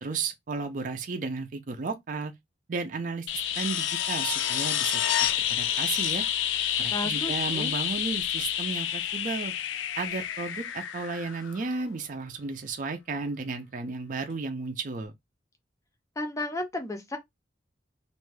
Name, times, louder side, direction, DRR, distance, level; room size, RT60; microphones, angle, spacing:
voice 1, 0.0-2.3 2.7-3.3 3.6-5.0 5.5-6.2 6.8-9.5 10.0-15.1, right 4 dB, 45° right, 0.4 m, -33 dB
sound 1, 3.3-11.9 14.3-14.4, left 10 dB, 75° left, 0.3 m, -29 dB
voice 2, 6.9-7.7 16.2-17.2, left 1 dB, 15° left, 0.5 m, -33 dB
2.5 x 2.2 x 3.2 m
head